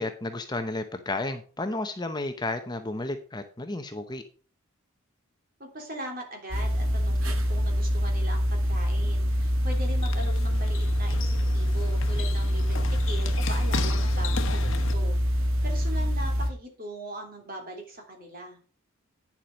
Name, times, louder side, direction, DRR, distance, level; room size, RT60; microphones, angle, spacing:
voice 1, 0.0-4.2, left 2 dB, 20° left, 7 dB, 0.7 m, -32 dB
voice 2, 5.6-18.6, right 1 dB, 40° right, 2 dB, 3.3 m, -40 dB
sound 1, 6.5-16.5, equal, 70° right, 1.7 m, -25 dB
sound 2, 9.3-14.9, left 4 dB, 65° left, 1.2 m, -36 dB
9.5 x 7.3 x 5.2 m, 0.39 s
head